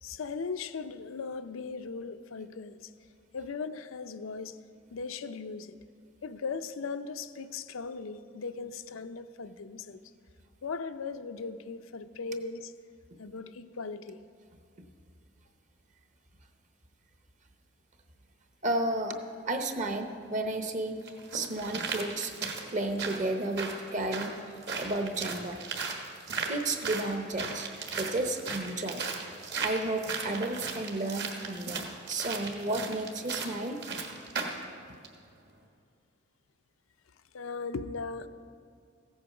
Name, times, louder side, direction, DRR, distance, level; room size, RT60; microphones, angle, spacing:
voice 1, 0.0-2.9 3.3-4.6 4.9-5.8 6.2-10.0 10.6-12.7 13.2-14.2 37.3-38.3, left 4 dB, 90° left, 11 dB, 0.6 m, -38 dB
voice 2, 18.6-19.2 19.5-21.0 21.3-24.3 24.8-25.6 26.5-27.7 27.9-29.0 29.6-33.8, right 2 dB, 40° right, 6 dB, 0.9 m, -32 dB
sound 1, 20.2-20.3 21.1-34.6 35.0-35.1, right 4 dB, 55° right, 1.4 m, -37 dB
15.0 x 8.6 x 5.9 m, 2.3 s
head